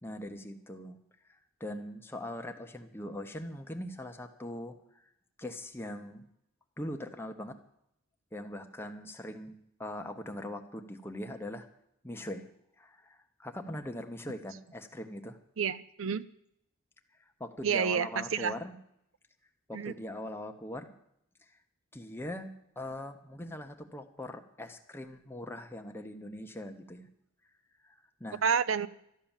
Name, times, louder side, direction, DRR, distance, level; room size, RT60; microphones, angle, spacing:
voice 1, 0.0-1.0 1.6-4.8 5.4-6.3 6.8-7.6 8.3-11.7 12.0-12.5 12.8-15.4 17.4-18.7 19.7-20.9 21.9-27.1 27.8-28.4, left 1 dB, 10° left, 5 dB, 1.1 m, -41 dB
voice 2, 15.6-16.3 17.6-18.5 19.7-19.9 28.4-28.9, right 6 dB, 75° right, 16 dB, 0.6 m, -29 dB
13.0 x 10.5 x 7.3 m, 0.74 s
head